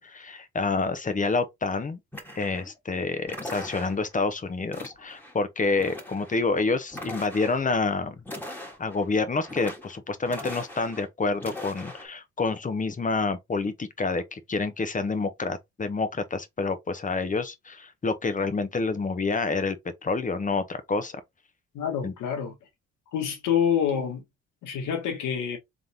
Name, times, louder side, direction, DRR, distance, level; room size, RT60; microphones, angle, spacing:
voice 1, 0.0-2.0 2.4-8.2 8.8-19.8 20.0-21.2 22.0-22.1, left 3 dB, 25° left, 0.8 m, -28 dB
sound 1, 2.1-2.8 3.3-4.2 4.7-5.3 5.6-6.4 6.9-7.6 8.2-9.1 9.4-10.0 10.3-11.1 11.3-12.1, left 1 dB, 5° left, 1.6 m, -40 dB
voice 2, 21.7-22.5 23.1-24.2 24.6-25.6, left 8 dB, 90° left, 1.6 m, -27 dB
3.7 x 3.6 x 2.8 m
cardioid pair, 90°, 30 cm